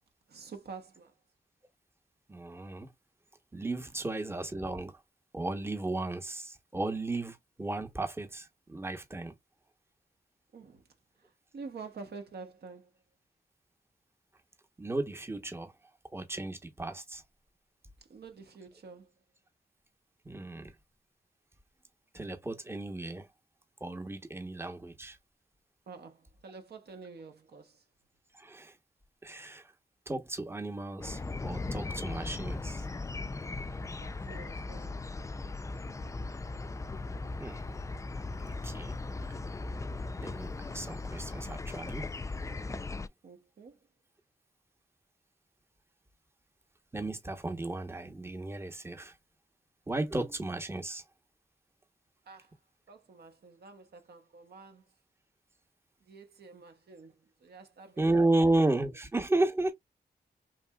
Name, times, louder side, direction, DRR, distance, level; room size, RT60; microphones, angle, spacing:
voice 1, 0.3-1.1 10.5-10.8 11.5-12.9 18.1-19.1 25.9-27.8 34.0-35.0 43.2-43.8 52.3-52.5 52.9-54.8 56.1-57.1 57.4-58.4, right 4 dB, 70° right, 1.0 m, -48 dB
voice 2, 2.3-2.9 3.5-5.0 5.3-9.3 14.8-15.7 16.1-17.2 20.2-20.7 22.1-23.3 23.8-25.2 28.3-28.8 29.2-29.7 30.1-32.9 37.4-37.6 38.4-38.9 39.2-39.4 40.2-42.1 46.9-49.1 49.9-51.0 58.0-59.7, right 2 dB, 15° right, 0.9 m, -33 dB
sound 1, 31.0-43.1, left 3 dB, 20° left, 0.3 m, -38 dB
3.3 x 2.6 x 2.3 m
cardioid pair, 50°, 17 cm